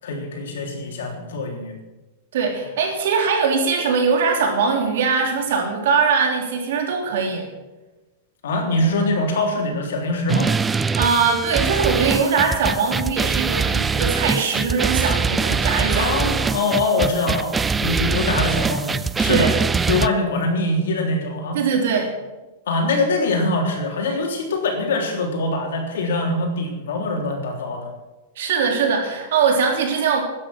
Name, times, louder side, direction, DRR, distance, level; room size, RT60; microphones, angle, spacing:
voice 1, 0.0-1.8 8.4-10.5 15.9-19.5 19.9-21.6 22.7-27.9, left 2 dB, 90° left, 1 dB, 3.5 m, -23 dB
voice 2, 2.3-7.5 10.9-16.1 19.3-19.6 21.5-22.1 28.4-30.2, right 5 dB, 75° right, 2 dB, 3.5 m, -21 dB
sound 1, 10.3-20.1, right 5 dB, 10° right, 0.3 m, -23 dB
13.0 x 9.9 x 6.3 m, 1.1 s
supercardioid pair, 150°, 0 cm